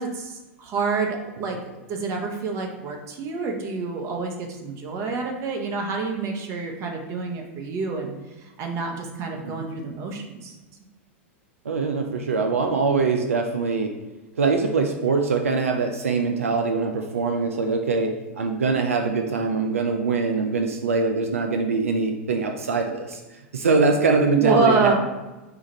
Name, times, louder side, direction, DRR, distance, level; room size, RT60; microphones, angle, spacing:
voice 1, 0.0-1.6 1.9-8.1 8.6-10.6 24.4-24.9, right 4 dB, 40° right, 2 dB, 1.0 m, -27 dB
voice 2, 11.6-14.0 14.4-24.9, right 4 dB, 85° right, 4 dB, 0.4 m, -23 dB
5.0 x 2.4 x 4.2 m, 1.1 s
hypercardioid pair, 100°, 7 cm